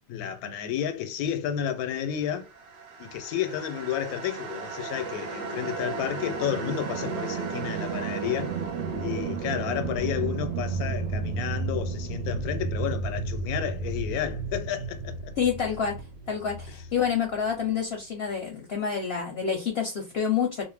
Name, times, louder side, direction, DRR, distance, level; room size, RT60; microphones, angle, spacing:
voice 1, 0.1-2.5 3.0-8.5 9.0-15.3, left 10 dB, 85° left, 1.1 m, -31 dB
sound 1, 2.5-17.7, right 4 dB, 65° right, 0.8 m, -33 dB
voice 2, 15.4-16.0 16.3-20.6, left 7 dB, 60° left, 0.7 m, -28 dB
2.5 x 2.1 x 3.2 m
omnidirectional pair, 1.5 m